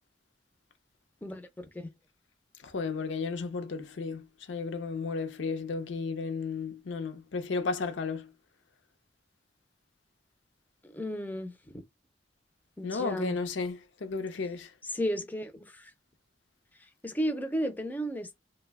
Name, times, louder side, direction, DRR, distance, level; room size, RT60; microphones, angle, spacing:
voice 1, 1.2-1.9 10.8-11.5 12.8-13.4 14.8-15.9 16.8-18.4, equal, 10° left, 0.4 m, -34 dB
voice 2, 2.6-8.3 12.8-14.7, left 4 dB, 80° left, 0.5 m, -33 dB
2.6 x 2.1 x 3.3 m
head